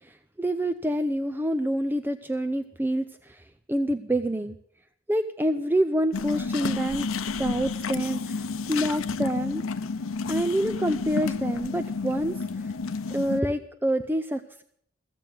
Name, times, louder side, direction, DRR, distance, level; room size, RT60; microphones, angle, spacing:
voice 1, 0.4-3.4 3.7-4.6 5.1-7.1 7.4-9.7 10.3-12.3 13.1-14.6, right 1 dB, 10° right, 8 dB, 0.5 m, -27 dB
sound 1, 6.1-13.4, left 4 dB, 85° left, 0.7 m, -31 dB
15.0 x 7.7 x 9.3 m, 0.66 s
head